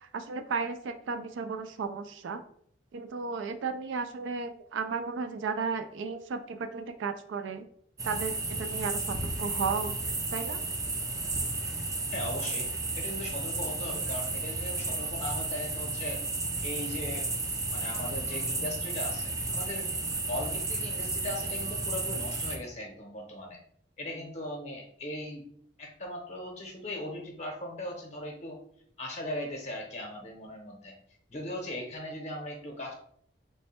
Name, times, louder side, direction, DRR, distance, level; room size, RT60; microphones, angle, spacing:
voice 1, 0.1-2.4 2.9-7.7 8.0-10.6, right 5 dB, 85° right, 9 dB, 0.3 m, -34 dB
sound 1, 8.0-22.6, right 3 dB, 20° right, 0.4 m, -33 dB
voice 2, 12.1-12.7 13.0-16.2 16.6-17.3 17.7-19.9 20.3-23.6 24.0-25.4 25.8-28.6 29.0-30.9 31.3-32.9, left 1 dB, 35° left, 1 dB, 0.7 m, -38 dB
3.3 x 2.1 x 4.2 m, 0.64 s
head